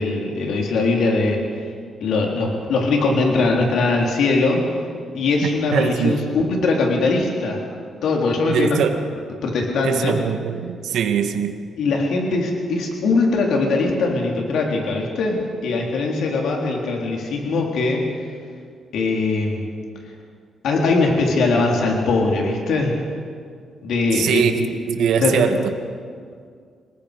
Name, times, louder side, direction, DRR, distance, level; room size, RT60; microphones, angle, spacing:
voice 1, 0.0-1.4 2.0-4.6 5.1-7.6 8.0-8.8 9.4-10.2 11.8-18.1 18.9-19.7 20.6-23.0 23.8-24.7 25.2-25.5, left 3 dB, 75° left, 3.6 m, -21 dB
voice 2, 5.4-6.3 8.5-9.0 9.8-11.6 24.1-25.7, right 7 dB, 85° right, 1.6 m, -22 dB
26.0 x 20.0 x 5.2 m
cardioid pair, 95°, 0 cm